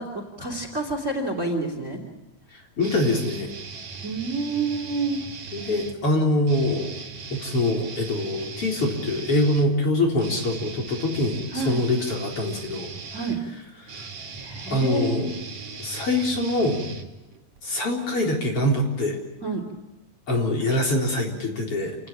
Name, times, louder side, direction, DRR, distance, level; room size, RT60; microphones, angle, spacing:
voice 1, 0.0-2.1 4.0-5.2 11.5-11.8 13.1-13.4 14.4-15.3 19.4-19.6, right 3 dB, 20° right, 5 dB, 3.2 m, -28 dB
voice 2, 2.8-3.5 5.5-6.9 7.3-12.9 13.8-14.1 14.7-15.3 15.8-16.8 17.6-19.2 20.3-22.0, left 1 dB, 40° left, 1 dB, 4.8 m, -24 dB
sound 1, 2.8-6.0 6.4-17.6, right 4 dB, 55° right, 3.9 m, -39 dB
28.5 x 19.0 x 8.8 m, 1.0 s
omnidirectional pair, 3.9 m